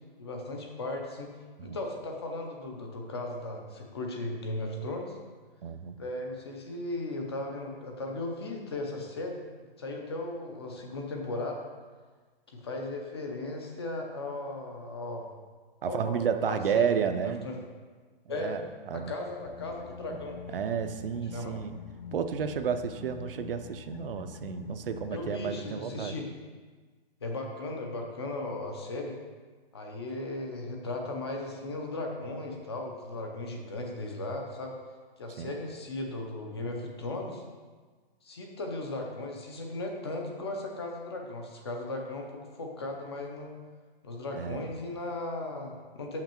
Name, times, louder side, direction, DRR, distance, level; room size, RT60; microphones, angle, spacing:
voice 1, 0.2-1.3 1.6-5.2 6.0-9.4 9.8-11.6 12.5-15.3 15.8-17.6 18.3-18.5 18.9-20.4 21.3-21.5 25.1-26.3 27.2-29.2 29.7-34.7 35.2-37.4 38.2-43.5 44.0-46.2, left 2 dB, 25° left, 2 dB, 0.6 m, -36 dB
voice 2, 5.6-6.0 15.8-17.5 18.3-18.6 18.9-19.1 20.5-21.8 22.1-26.1 35.4-35.5 44.3-44.7, right 7 dB, 65° right, 9 dB, 0.6 m, -31 dB
sound 1, 19.4-25.3, left 7 dB, 70° left, 0.5 m, -45 dB
6.3 x 5.8 x 4.4 m, 1.4 s
hypercardioid pair, 180°, 30 cm